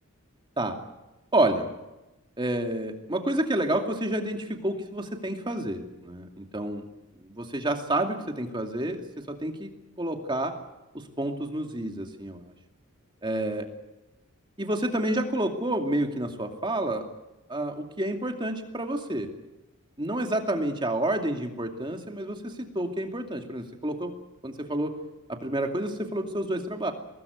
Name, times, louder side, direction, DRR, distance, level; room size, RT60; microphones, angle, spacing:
voice 1, 1.3-1.7 2.4-6.8 7.2-9.7 10.0-10.5 11.2-12.4 13.2-13.7 14.6-17.0 17.5-19.3 20.0-24.1 24.4-24.9 25.3-26.9, right 1 dB, 20° right, 4 dB, 2.4 m, -29 dB
24.0 x 19.0 x 8.1 m, 1.0 s
head